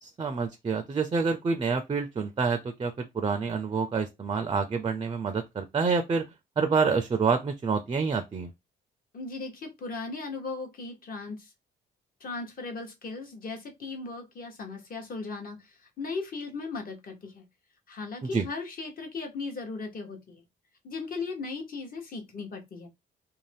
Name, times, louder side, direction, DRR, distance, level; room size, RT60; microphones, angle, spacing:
voice 1, 0.0-6.3 6.6-8.5 18.2-18.5, right 5 dB, 25° right, 0.4 m, -27 dB
voice 2, 9.1-11.5 12.2-17.4 17.9-20.4 20.8-22.9, left 3 dB, 45° left, 1.0 m, -37 dB
2.6 x 2.1 x 3.3 m
cardioid pair, 90°, 20 cm